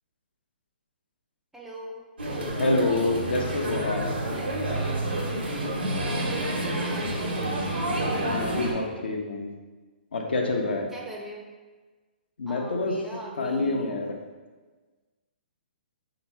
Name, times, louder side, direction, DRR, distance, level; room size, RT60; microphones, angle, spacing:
voice 1, 1.5-2.0 4.3-4.4 5.5-7.6 10.9-11.5 12.5-13.9, equal, 5° right, -2 dB, 0.5 m, -41 dB
sound 1, 2.2-8.7, right 1 dB, 85° right, 1.1 m, -28 dB
voice 2, 2.6-4.0 8.2-9.5 10.1-10.9 12.4-12.9 13.4-14.1, left 2 dB, 75° left, 2 dB, 0.7 m, -27 dB
3.6 x 3.0 x 4.3 m, 1.3 s
hypercardioid pair, 145°, 6 cm